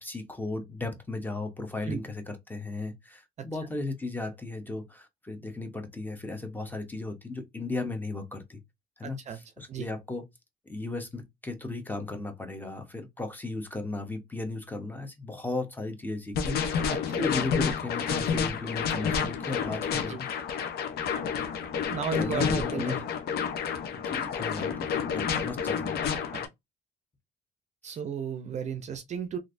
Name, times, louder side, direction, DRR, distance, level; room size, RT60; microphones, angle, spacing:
voice 1, 0.0-8.6 9.0-10.3 10.7-16.9 17.2-20.3 22.1-23.0 23.9-26.0 27.8-28.0, left 2 dB, 10° left, 0.9 m, -36 dB
voice 2, 9.0-9.4 9.7-9.9 16.9-17.2 20.1-20.2 21.9-23.0 25.3-25.4 26.3-26.5 27.8-29.4, right 7 dB, 45° right, 0.5 m, -34 dB
sound 1, 16.3-26.5, left 7 dB, 70° left, 0.8 m, -30 dB
3.1 x 2.6 x 2.5 m
cardioid pair, 110°, 17 cm